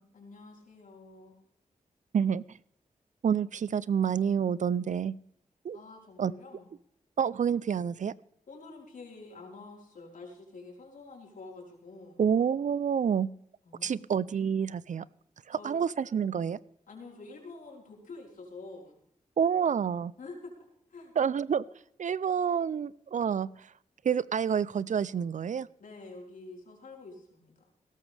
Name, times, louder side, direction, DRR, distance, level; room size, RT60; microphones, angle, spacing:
voice 1, 0.1-1.4 5.7-6.7 8.5-12.2 13.6-14.0 15.5-15.9 16.9-18.9 20.2-21.1 25.8-27.7, left 3 dB, 80° left, -1 dB, 4.5 m, -48 dB
voice 2, 3.2-5.2 5.6-5.8 6.2-6.3 7.2-8.1 12.2-13.3 13.8-15.1 15.5-16.6 19.4-20.1 21.2-21.6 22.0-23.5 24.0-25.7, right 7 dB, 65° right, 20 dB, 0.5 m, -28 dB
17.0 x 13.5 x 3.4 m, 0.73 s
cardioid pair, 50°, 14 cm